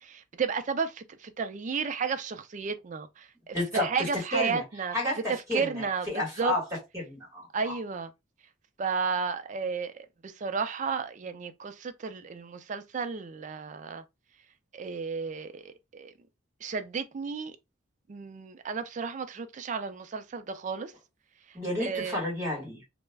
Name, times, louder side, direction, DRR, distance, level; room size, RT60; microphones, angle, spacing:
voice 1, 0.0-5.0 5.3-6.5 7.5-8.1 8.8-14.0 14.7-16.1 16.6-17.6 18.1-20.9 21.5-22.2, right 5 dB, 40° right, 0.4 m, -33 dB
voice 2, 3.5-4.1 4.3-4.6 4.9-6.6 6.9-7.8 21.5-22.8, left 1 dB, 15° right, 1.2 m, -31 dB
2.2 x 2.1 x 3.3 m
head